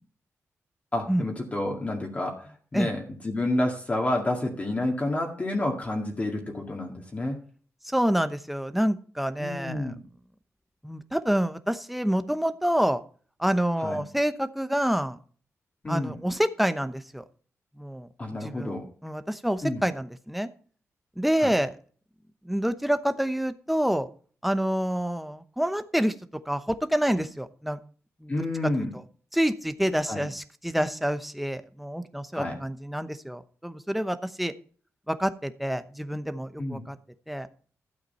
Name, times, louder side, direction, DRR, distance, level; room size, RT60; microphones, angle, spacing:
voice 1, 0.9-7.4 9.4-10.0 13.8-14.0 15.8-16.2 18.2-18.9 19.6-19.8 21.4-21.5 28.3-28.9 30.1-30.2 32.3-32.6 36.6-36.9, left 1 dB, 25° left, 0 dB, 2.0 m, -29 dB
voice 2, 7.8-9.9 10.8-13.0 13.4-15.2 15.9-17.2 17.8-18.1 18.4-18.7 19.0-20.5 21.2-21.8 22.4-24.1 24.4-27.8 28.2-28.3 29.3-34.5 35.1-37.0 37.3-37.5, equal, ahead, 11 dB, 0.9 m, -27 dB
12.5 x 8.2 x 4.3 m, 0.43 s
wide cardioid pair, 120°, 5 cm